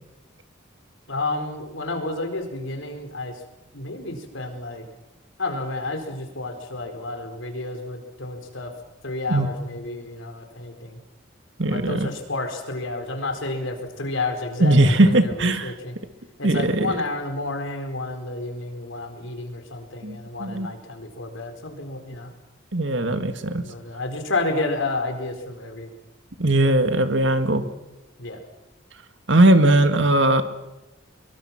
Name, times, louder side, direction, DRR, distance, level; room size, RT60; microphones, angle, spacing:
voice 1, 1.1-3.4 3.7-4.8 5.4-8.7 9.0-11.0 11.7-15.9 16.4-22.3 23.6-25.9 26.6-26.8 28.2-28.4, left 2 dB, 85° left, 5 dB, 4.5 m, -30 dB
voice 2, 11.6-12.1 14.6-15.7 16.4-17.0 20.0-20.7 22.7-23.6 26.4-27.6 29.3-30.4, right 1 dB, 70° right, 8 dB, 2.1 m, -19 dB
23.5 x 23.0 x 6.1 m, 1.0 s
head